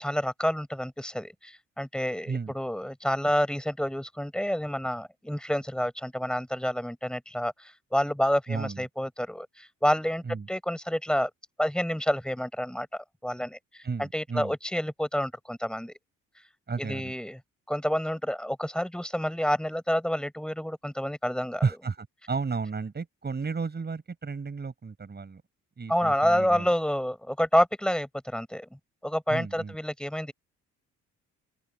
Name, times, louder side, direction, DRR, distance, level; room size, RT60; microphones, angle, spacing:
voice 1, 0.0-11.3 11.6-12.9 13.2-15.9 16.8-17.4 17.7-21.6 25.9-30.3, equal, 5° left, 5.1 m, -28 dB
voice 2, 8.5-8.8 10.3-10.5 13.8-14.5 16.7-17.1 21.6-25.4 25.8-26.7 29.3-29.7, right 4 dB, 35° right, 7.8 m, -33 dB
open air
cardioid pair, 90°, 30 cm